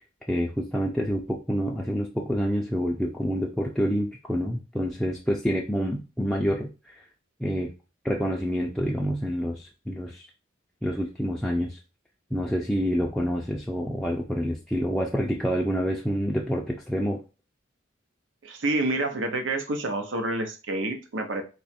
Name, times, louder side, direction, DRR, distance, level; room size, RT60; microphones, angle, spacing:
voice 1, 0.3-7.0 7.4-7.7 8.0-10.3 10.8-11.8 12.3-17.2, equal, ahead, -2 dB, 0.3 m, -27 dB
voice 2, 18.4-21.4, right 2 dB, 85° right, 6 dB, 0.7 m, -28 dB
2.9 x 2.3 x 4.2 m, 0.32 s
head